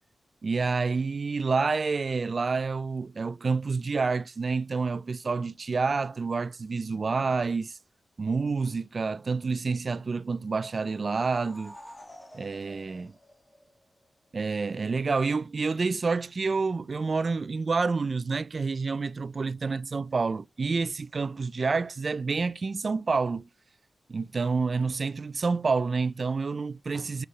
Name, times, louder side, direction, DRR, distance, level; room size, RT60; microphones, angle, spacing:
voice 1, 0.4-7.8 8.2-11.8 12.3-13.1 14.3-23.5 24.1-27.2, right 4 dB, 40° right, 0.3 m, -28 dB
sound 1, 10.5-14.0, equal, 10° left, 1.8 m, -50 dB
5.7 x 5.5 x 3.1 m
wide cardioid pair, 120°, 0 cm